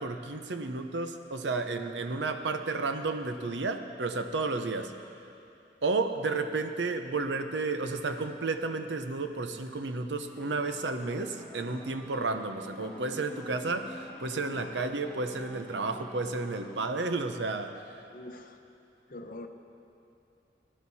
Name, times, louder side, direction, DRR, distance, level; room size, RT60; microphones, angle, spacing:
voice 1, 0.0-4.9 5.8-17.7, right 3 dB, 90° right, 7 dB, 0.8 m, -32 dB
sound 1, 10.0-16.8, left 1 dB, 5° left, 1.1 m, -48 dB
voice 2, 18.1-18.6 19.1-19.5, left 2 dB, 50° left, 6 dB, 0.8 m, -44 dB
19.5 x 11.5 x 4.2 m, 2.6 s
head